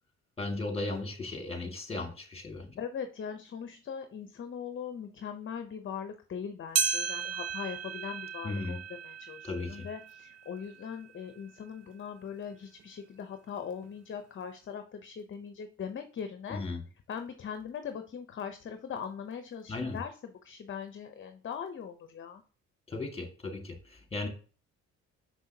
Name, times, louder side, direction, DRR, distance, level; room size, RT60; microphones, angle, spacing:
voice 1, 0.4-2.8 8.4-8.8 9.4-9.9 16.5-16.8 19.7-20.0 22.9-24.3, left 2 dB, 20° left, 4 dB, 1.8 m, -36 dB
voice 2, 2.8-16.6 17.1-22.4, left 7 dB, 40° left, 8 dB, 0.7 m, -40 dB
sound 1, 6.7-11.4 11.9-12.0 12.8-12.9 13.8-13.9, right 6 dB, 55° right, 0.7 m, -35 dB
6.2 x 5.5 x 2.8 m, 0.39 s
cardioid pair, 90°, 30 cm